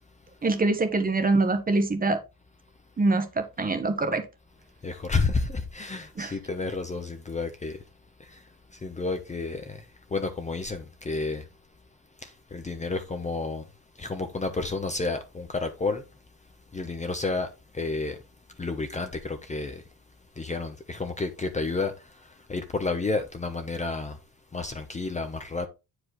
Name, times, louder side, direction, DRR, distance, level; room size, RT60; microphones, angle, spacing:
voice 1, 0.4-2.2 3.0-4.2 6.2-6.4, right 3 dB, 20° right, 1.2 m, -24 dB
voice 2, 4.8-7.8 8.8-9.8 10.1-11.4 12.5-13.6 14.0-16.0 16.7-17.5 17.8-18.1 18.6-19.8 20.4-21.9 22.5-24.2 24.5-25.7, left 3 dB, 20° left, 0.9 m, -30 dB
8.4 x 5.0 x 3.9 m
cardioid pair, 125°, 39 cm